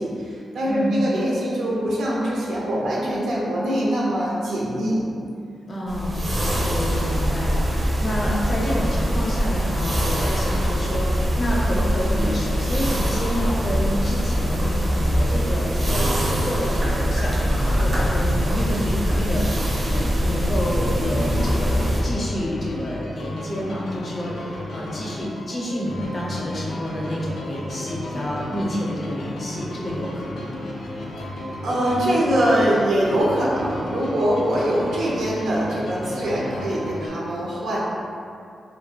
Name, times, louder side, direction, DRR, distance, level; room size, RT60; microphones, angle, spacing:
voice 1, 0.0-5.0 31.6-37.8, right 1 dB, 85° right, -6 dB, 0.5 m, -23 dB
voice 2, 0.7-1.0 5.7-6.2 6.6-14.7 14.9-21.7 22.0-30.7, equal, 35° left, -5 dB, 0.5 m, -29 dB
sound 1, 5.9-22.0, equal, 30° right, 0.4 m, -23 dB
sound 2, 20.5-37.1, left 1 dB, 90° left, 0.4 m, -33 dB
2.2 x 2.1 x 2.9 m, 2.4 s
wide cardioid pair, 150°, 0 cm